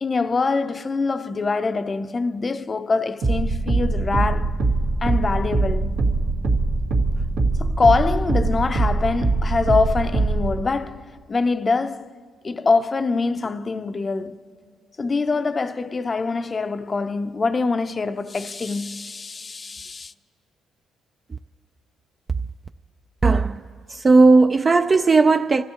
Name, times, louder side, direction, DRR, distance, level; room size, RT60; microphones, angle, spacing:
voice 1, 0.0-4.6 5.0-6.0 7.6-12.1 12.4-14.4 15.0-20.1, left 4 dB, 30° left, 0.5 m, -24 dB
sound 1, 3.2-10.6, right 3 dB, 90° right, 1.8 m, -22 dB
voice 2, 23.2-23.6 23.9-25.6, right 3 dB, 30° right, 0.3 m, -16 dB
30.0 x 14.5 x 2.9 m
cardioid pair, 90°, 0 cm